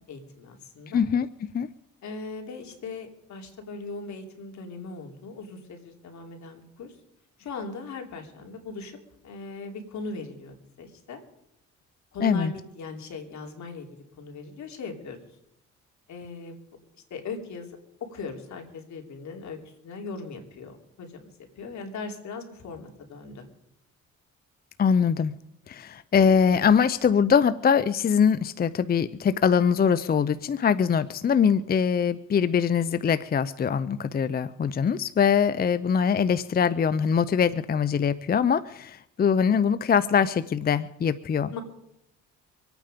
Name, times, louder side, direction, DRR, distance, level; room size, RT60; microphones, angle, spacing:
voice 1, 0.1-1.0 2.0-6.9 7.4-9.0 9.2-11.2 12.1-15.2 16.1-16.6 17.1-17.8 18.1-21.3 21.6-23.5 41.5-41.6, left 3 dB, 70° left, 3 dB, 3.2 m, -39 dB
voice 2, 0.9-1.7 12.2-12.5 24.8-25.4 25.7-41.6, left 7 dB, 30° left, 14 dB, 0.5 m, -23 dB
25.0 x 9.1 x 5.2 m, 0.80 s
cardioid pair, 90°, 30 cm